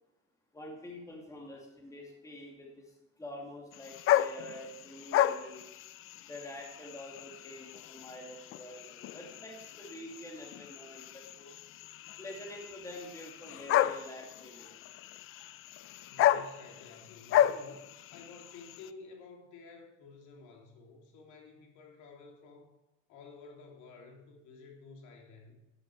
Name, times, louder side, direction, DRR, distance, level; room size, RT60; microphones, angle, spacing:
voice 1, 0.5-2.8 3.2-5.6 6.2-11.5 12.2-14.7, left 1 dB, 10° left, 0 dB, 2.3 m, -47 dB
sound 1, 3.7-18.9, left 12 dB, 40° left, 0.4 m, -33 dB
voice 2, 16.0-22.7 23.1-25.6, left 4 dB, 55° left, 1 dB, 2.9 m, -52 dB
11.5 x 10.0 x 4.6 m, 0.96 s
supercardioid pair, 125°, 35 cm